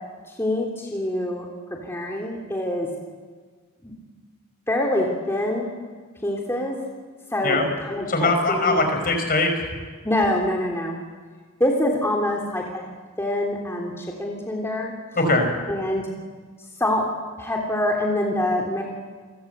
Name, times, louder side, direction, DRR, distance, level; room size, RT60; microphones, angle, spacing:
voice 1, 0.4-1.5 1.8-2.9 3.8-3.9 4.7-5.7 6.2-6.7 7.3-8.8 10.0-11.0 11.6-12.8 13.2-14.9 15.7-16.1 16.8-17.0 17.4-18.8, left 1 dB, 10° left, -1 dB, 3.2 m, -25 dB
voice 2, 8.1-9.6 15.2-15.5, left 2 dB, 40° left, 5 dB, 5.2 m, -21 dB
29.0 x 23.0 x 8.1 m, 1.5 s
head